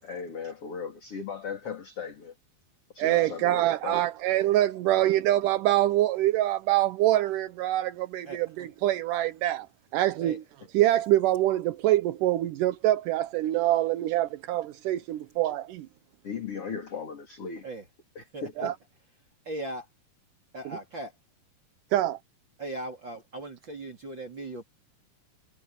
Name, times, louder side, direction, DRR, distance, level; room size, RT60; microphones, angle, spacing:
voice 1, 0.0-2.4 2.9-4.1 16.2-17.7 18.2-18.7, left 5 dB, 35° left, 4.1 m, -37 dB
voice 2, 3.0-9.7 9.9-10.4 10.7-15.9 18.6-18.7 21.9-22.2, right 14 dB, 75° right, 2.0 m, -25 dB
voice 3, 18.3-18.7 19.5-19.9 20.5-21.1 22.6-24.6, right 1 dB, 30° right, 3.5 m, -38 dB
omnidirectional pair, 4.5 m